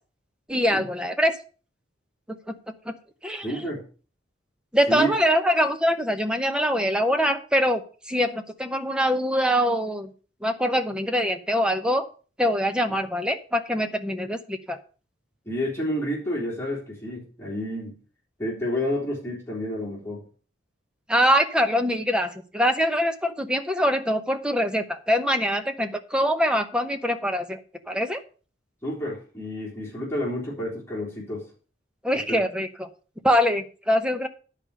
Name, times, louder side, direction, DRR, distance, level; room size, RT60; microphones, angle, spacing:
voice 1, 0.5-1.3 2.5-2.6 2.9-3.0 3.2-3.5 4.7-7.8 8.1-10.1 10.4-12.1 12.4-14.8 21.1-27.6 27.9-28.2 32.0-32.9 33.2-34.3, equal, 5° right, 6 dB, 0.9 m, -23 dB
voice 2, 3.4-3.8 4.9-5.1 12.9-13.0 15.5-18.0 18.4-20.2 28.8-31.5 32.3-32.4, equal, 15° left, -5 dB, 3.6 m, -30 dB
10.5 x 5.0 x 6.5 m, 0.38 s
head